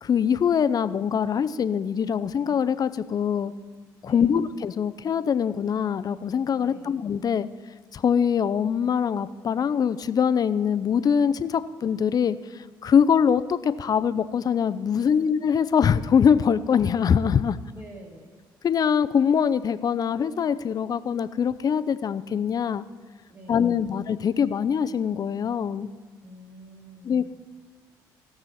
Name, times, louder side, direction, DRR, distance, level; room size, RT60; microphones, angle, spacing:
voice 1, 0.0-3.5 4.0-7.5 7.9-12.4 12.8-17.6 18.6-22.8 23.5-25.9 27.1-27.3, left 7 dB, 50° left, 13 dB, 0.5 m, -23 dB
voice 2, 4.0-4.4 6.6-7.0 14.9-15.1 17.7-18.4 23.3-23.9 26.2-27.3, right 1 dB, 25° right, 1 dB, 2.5 m, -47 dB
17.5 x 6.2 x 4.2 m, 1.5 s
supercardioid pair, 70°, 9 cm